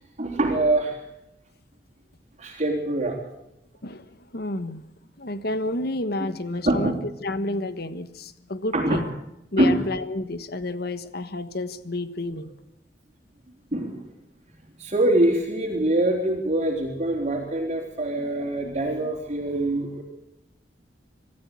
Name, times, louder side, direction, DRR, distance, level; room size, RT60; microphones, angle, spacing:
voice 1, 0.2-1.0 2.4-3.2 6.7-7.0 8.7-9.0 9.6-9.8 13.7-14.1 14.8-20.0, right 1 dB, 40° right, 0 dB, 3.7 m, -24 dB
voice 2, 3.8-4.8 5.2-6.9 7.2-9.1 9.5-12.5, left 2 dB, 60° left, 12 dB, 1.4 m, -30 dB
25.0 x 13.5 x 8.4 m, 0.85 s
head